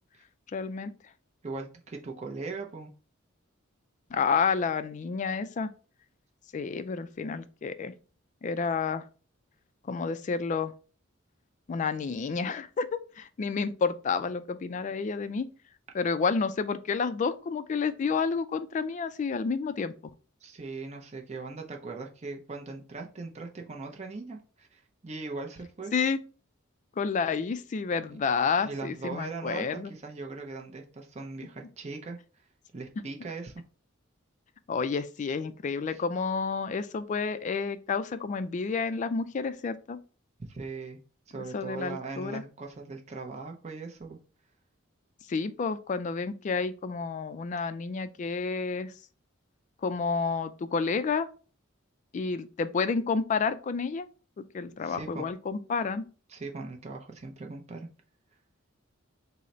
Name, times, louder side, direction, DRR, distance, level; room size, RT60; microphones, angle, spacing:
voice 1, 0.5-0.9 4.1-5.7 6.5-7.9 8.4-9.0 9.9-10.7 11.7-12.9 13.2-15.5 15.9-19.9 25.9-26.2 27.0-29.9 34.7-40.0 41.5-42.4 45.3-48.9 49.8-51.3 52.1-54.1 54.4-56.0, left 5 dB, 35° left, 0.3 m, -30 dB
voice 2, 1.4-2.9 20.4-25.9 28.6-32.2 32.7-33.5 35.9-36.0 40.4-41.0 41.3-44.2 54.8-55.2 56.3-57.9, right 3 dB, 35° right, 0.6 m, -39 dB
3.8 x 2.0 x 4.2 m
head